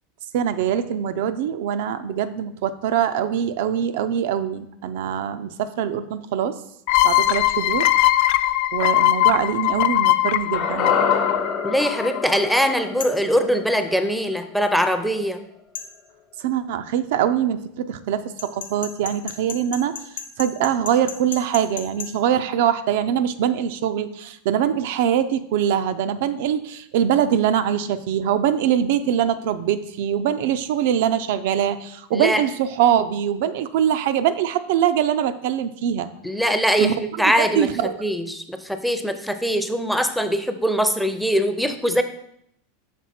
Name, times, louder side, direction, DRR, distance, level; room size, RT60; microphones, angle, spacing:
voice 1, 0.3-6.6 7.0-7.9 8.7-10.9 16.4-20.0 20.4-36.1 36.8-36.9 37.2-38.0, right 9 dB, 70° right, 11 dB, 0.4 m, -23 dB
sound 1, 6.9-12.4, left 15 dB, 60° left, 0.3 m, -20 dB
sound 2, 10.5-14.8 15.1-15.2, left 5 dB, 45° left, 1.0 m, -27 dB
voice 2, 11.6-15.4 32.1-32.4 36.2-37.7 38.0-42.0, equal, ahead, 9 dB, 0.5 m, -22 dB
sound 3, 13.0-13.3 15.8-15.9 18.4-22.1, left 7 dB, 90° left, 0.8 m, -34 dB
6.0 x 3.8 x 4.2 m, 0.74 s
supercardioid pair, 120°, 0 cm